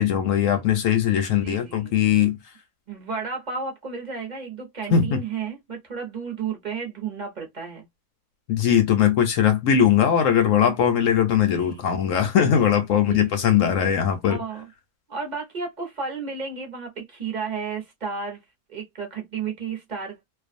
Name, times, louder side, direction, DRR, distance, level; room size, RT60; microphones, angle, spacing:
voice 1, 0.0-2.4 4.9-5.2 8.5-14.4, left 9 dB, 70° left, 0.8 m, -20 dB
voice 2, 1.3-1.9 2.9-7.9 11.4-11.9 13.0-13.2 13.5-13.6 14.2-14.7 15.1-18.4 18.7-20.2, right 5 dB, 40° right, 0.7 m, -33 dB
2.5 x 2.2 x 2.5 m
omnidirectional pair, 1.7 m